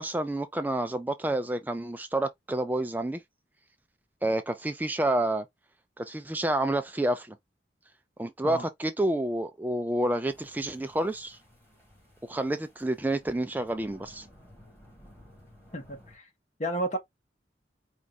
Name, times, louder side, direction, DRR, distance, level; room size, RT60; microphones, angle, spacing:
voice 1, 0.0-3.2 4.2-5.4 6.0-7.4 8.2-11.4 12.3-14.3, right 1 dB, 10° right, 0.3 m, -29 dB
sound 1, 10.3-16.2, equal, 15° left, 2.2 m, -56 dB
voice 2, 15.7-16.3 16.6-17.0, right 1 dB, 40° left, 1.2 m, -32 dB
4.8 x 2.3 x 4.0 m
head